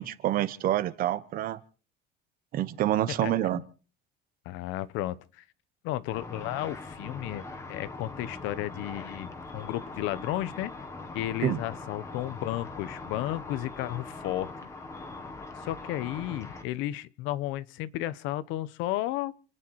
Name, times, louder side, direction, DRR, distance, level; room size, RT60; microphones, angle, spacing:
voice 1, 0.0-1.6 2.5-3.6 11.4-11.6, right 12 dB, 45° right, 1.2 m, -27 dB
voice 2, 3.2-3.6 4.4-5.4 5.8-10.7 11.1-14.5 15.6-19.3, left 15 dB, 85° left, 1.0 m, -33 dB
Car / Traffic noise roadway noise / Engine, 6.1-16.6, left 3 dB, 15° left, 1.8 m, -41 dB
28.5 x 10.0 x 4.7 m
cardioid pair, 175°, 20 cm